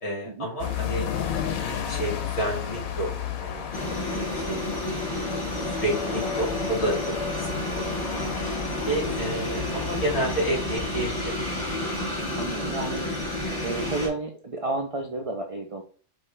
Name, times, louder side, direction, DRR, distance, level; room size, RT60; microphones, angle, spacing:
voice 1, 0.0-1.1 1.6-3.1 3.4-5.1 5.5-8.1 8.8-11.3, right 1 dB, 50° left, -4 dB, 2.3 m, -31 dB
sound 1, 0.6-11.9, left 8 dB, 85° left, 1.2 m, -34 dB
sound 2, 3.7-14.1, left 1 dB, 20° left, 1.7 m, -30 dB
voice 2, 12.3-13.1 13.6-15.8, right 3 dB, 65° right, 3 dB, 0.3 m, -31 dB
5.3 x 2.6 x 3.3 m, 0.42 s
omnidirectional pair, 1.4 m